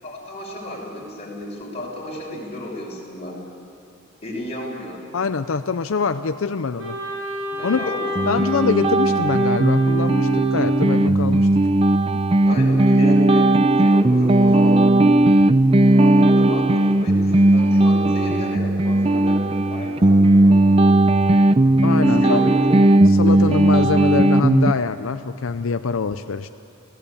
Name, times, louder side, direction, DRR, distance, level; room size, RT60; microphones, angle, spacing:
voice 1, 0.0-3.4 4.2-5.0 7.6-8.0 8.4-8.6 12.4-14.9 15.7-21.2 22.0-22.8, left 1 dB, 30° left, -3 dB, 5.9 m, -32 dB
voice 2, 5.1-7.0 7.6-7.8 8.3-11.5 21.8-22.4 23.1-26.5, left 4 dB, 80° left, 10 dB, 0.6 m, -24 dB
Wind instrument woodwind instrument, 6.8-10.8, right 1 dB, 85° right, 7.7 m, -28 dB
sound 1, 8.2-24.7, right 1 dB, 30° right, 0.5 m, -16 dB
28.5 x 17.0 x 8.6 m, 2.6 s
head